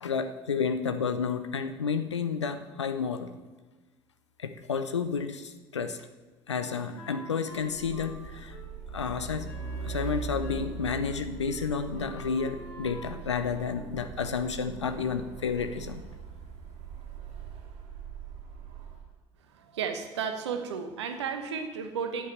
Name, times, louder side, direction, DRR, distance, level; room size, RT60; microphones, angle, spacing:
voice 1, 0.0-3.3 4.4-6.0 6.5-8.6 8.9-9.5 9.8-16.0, left 6 dB, 85° left, 9 dB, 0.7 m, -31 dB
Wind instrument woodwind instrument, 6.5-10.7 11.0-11.2 11.4-13.8, left 3 dB, 60° left, 4.3 m, -48 dB
Truck, 7.6-19.1, right 5 dB, 50° right, 2.4 m, -41 dB
voice 2, 19.5-22.3, right 6 dB, 75° right, 7 dB, 1.1 m, -33 dB
8.9 x 7.5 x 7.7 m, 1.2 s
figure-of-eight pair, 55°, 15 cm